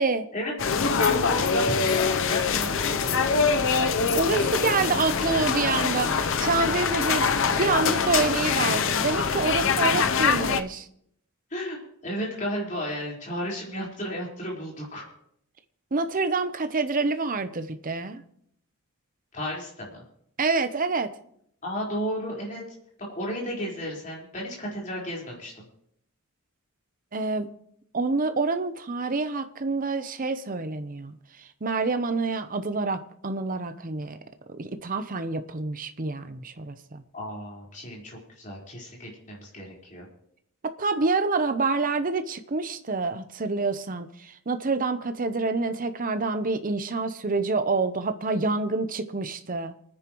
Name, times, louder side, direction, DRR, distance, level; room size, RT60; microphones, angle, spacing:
voice 1, 0.3-3.3 4.4-4.6 9.5-9.7 11.5-11.8 12.0-15.0 19.3-20.0 21.6-22.6 23.1-25.6 37.1-40.1, equal, 35° left, -3 dB, 4.4 m, -33 dB
sound 1, 0.6-10.6, left 5 dB, 60° left, 0.7 m, -24 dB
voice 2, 4.1-10.9 15.9-18.2 20.4-21.1 27.1-27.5 27.9-34.2 34.6-37.0 40.8-49.7, right 3 dB, 40° right, 9 dB, 0.8 m, -27 dB
28.0 x 9.9 x 3.1 m, 0.70 s
head